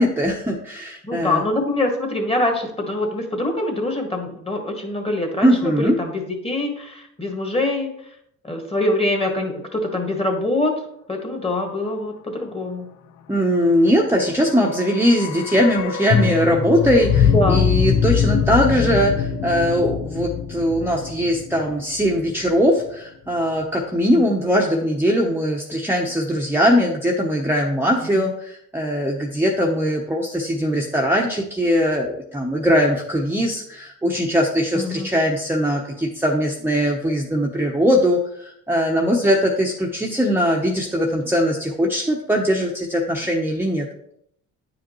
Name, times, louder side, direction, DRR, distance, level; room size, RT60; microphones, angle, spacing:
voice 1, 0.0-1.4 5.4-5.9 13.3-43.9, equal, 5° right, -1 dB, 0.9 m, -20 dB
voice 2, 1.0-7.9 8.4-10.7 11.1-12.9 17.3-17.6 24.1-24.2 28.1-28.2 34.7-35.1, left 2 dB, 20° left, 3 dB, 1.7 m, -24 dB
sound 1, 14.4-22.5 22.8-22.9, left 7 dB, 65° left, 0.6 m, -23 dB
9.2 x 5.0 x 3.1 m, 0.72 s
cardioid pair, 90°, 30 cm